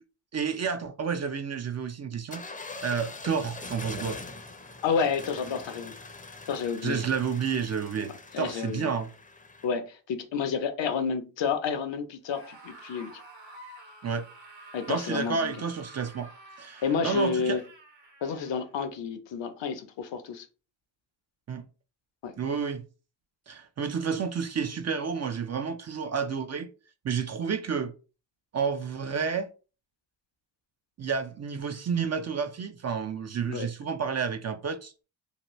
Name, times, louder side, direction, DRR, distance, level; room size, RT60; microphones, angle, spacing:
voice 1, 0.3-2.4 2.8-4.2 6.8-9.1 14.0-14.3 14.9-16.3 16.6-17.6 21.5-21.6 22.4-22.8 23.5-26.7 27.0-27.9 28.5-29.5 31.0-34.9, right 6 dB, 35° right, 0.4 m, -30 dB
sound 1, 2.3-9.7, left 3 dB, 15° left, 0.6 m, -43 dB
voice 2, 4.8-5.9 6.5-7.0 8.3-8.9 9.6-13.2 14.7-15.6 16.8-17.6 18.2-20.5 22.2-22.3 33.5-33.7, left 6 dB, 65° left, 0.7 m, -30 dB
Screaming, 12.2-18.7, right 2 dB, 65° right, 1.2 m, -49 dB
2.8 x 2.2 x 3.0 m
supercardioid pair, 50°, 48 cm